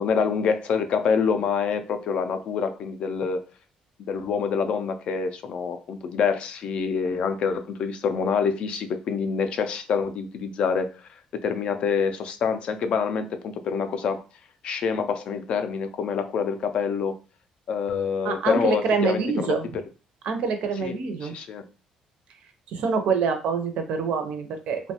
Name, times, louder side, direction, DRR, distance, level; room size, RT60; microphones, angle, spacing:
voice 1, 0.0-3.4 4.0-10.9 11.4-14.2 14.6-17.2 17.7-19.5 20.8-20.9 21.3-21.6, left 6 dB, 50° left, 9 dB, 0.3 m, -26 dB
voice 2, 18.2-19.7 20.2-21.3 22.7-24.9, right 5 dB, 65° right, 6 dB, 0.5 m, -26 dB
2.9 x 2.2 x 2.7 m, 0.34 s
cardioid pair, 155°, 2 cm